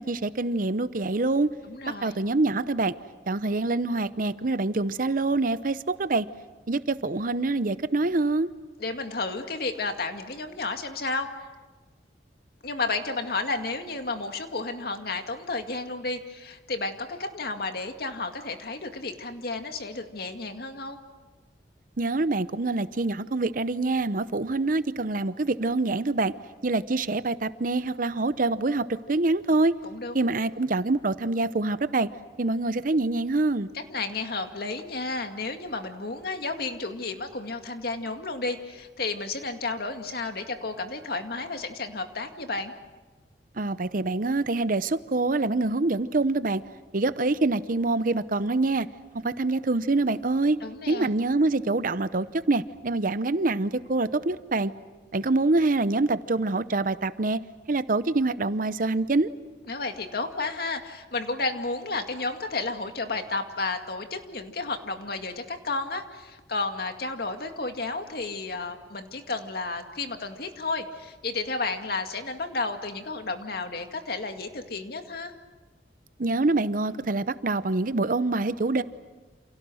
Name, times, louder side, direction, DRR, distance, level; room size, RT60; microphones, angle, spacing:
voice 1, 0.0-1.5 2.0-2.9 3.3-6.3 6.7-8.5 22.0-26.3 26.6-29.7 30.1-32.1 32.4-33.7 43.6-46.6 46.9-48.9 49.2-50.6 50.9-54.7 55.1-57.4 57.7-59.3 76.2-78.8, right 2 dB, 50° right, 14 dB, 0.8 m, -25 dB
voice 2, 1.6-2.2 8.8-11.3 12.6-21.0 29.8-30.3 33.9-42.7 50.6-51.1 59.7-75.3, left 3 dB, 60° left, 5 dB, 2.2 m, -32 dB
29.0 x 28.5 x 6.4 m, 1.2 s
head